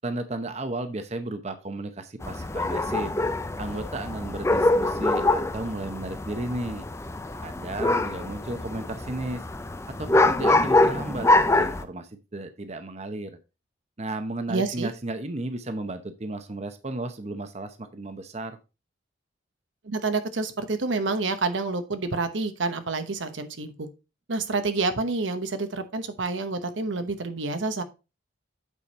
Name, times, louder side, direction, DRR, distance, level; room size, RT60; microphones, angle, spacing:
voice 1, 0.0-3.1 3.6-6.8 7.4-9.4 10.0-13.4 14.0-18.6, right 2 dB, 35° right, 9 dB, 0.8 m, -34 dB
sound 1, 2.2-11.8, left 2 dB, 15° left, 0.5 m, -24 dB
voice 2, 14.5-14.9 19.8-23.9 24.3-27.8, right 3 dB, 85° right, 9 dB, 1.0 m, -28 dB
8.3 x 5.1 x 4.1 m, 0.29 s
head